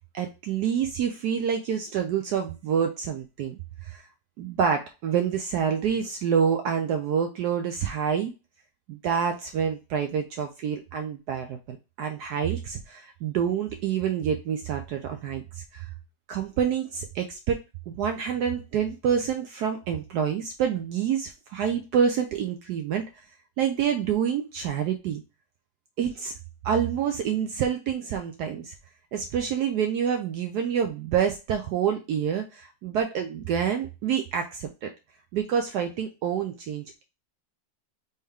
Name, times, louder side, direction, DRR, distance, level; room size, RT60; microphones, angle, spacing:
voice 1, 0.1-4.0 4.4-8.3 8.9-15.9 16.3-23.2 23.6-25.2 26.0-26.3 26.6-28.7 29.1-34.9 35.3-37.0, right 8 dB, 75° right, 5 dB, 1.1 m, -27 dB
4.1 x 3.7 x 3.5 m, 0.29 s
omnidirectional pair, 2.0 m